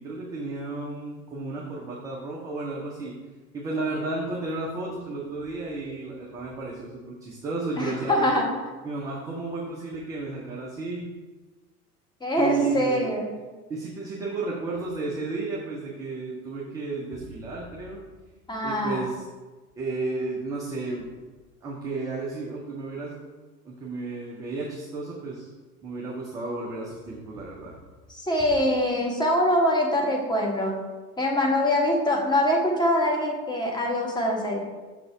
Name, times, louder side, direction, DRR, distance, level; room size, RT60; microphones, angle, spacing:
voice 1, 0.0-3.2 3.5-8.3 8.8-11.1 12.4-13.1 13.7-18.0 18.6-19.3 19.8-21.1 21.6-23.2 23.6-25.5 25.8-27.7, right 3 dB, 10° right, -4 dB, 0.3 m, -32 dB
voice 2, 7.8-8.5 12.2-13.3 18.5-19.1 28.1-30.8 31.2-34.6, left 1 dB, 10° left, -1 dB, 1.2 m, -24 dB
6.1 x 3.9 x 4.8 m, 1.2 s
figure-of-eight pair, 85°, 48 cm